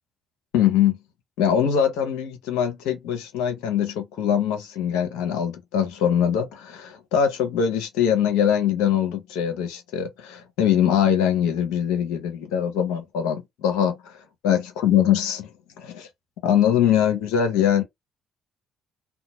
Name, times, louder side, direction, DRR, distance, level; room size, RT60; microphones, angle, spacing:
voice 1, 0.5-1.0 1.4-14.2 14.4-15.5 15.8-16.1 16.4-17.8, left 9 dB, 75° left, 0.8 m, -22 dB
2.8 x 2.2 x 2.8 m
hypercardioid pair, 50°, 0 cm